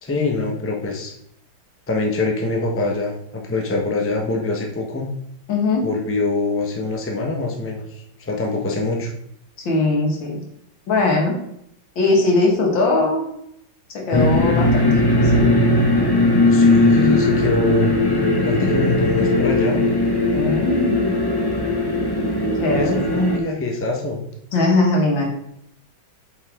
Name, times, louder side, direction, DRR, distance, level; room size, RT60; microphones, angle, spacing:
voice 1, 0.0-1.1 1.9-5.1 5.8-7.8 8.2-9.1 16.5-17.9 18.4-19.8 22.7-24.2, left 2 dB, 10° left, 1 dB, 0.7 m, -24 dB
voice 2, 5.5-5.8 9.6-10.4 10.9-11.4 12.0-13.2 13.9-15.5 20.3-21.1 22.6-23.0 24.5-25.2, left 2 dB, 85° left, -1 dB, 2.5 m, -20 dB
sound 1, 14.1-23.4, left 2 dB, 35° left, 0.3 m, -18 dB
7.8 x 5.6 x 3.6 m, 0.73 s
omnidirectional pair, 2.0 m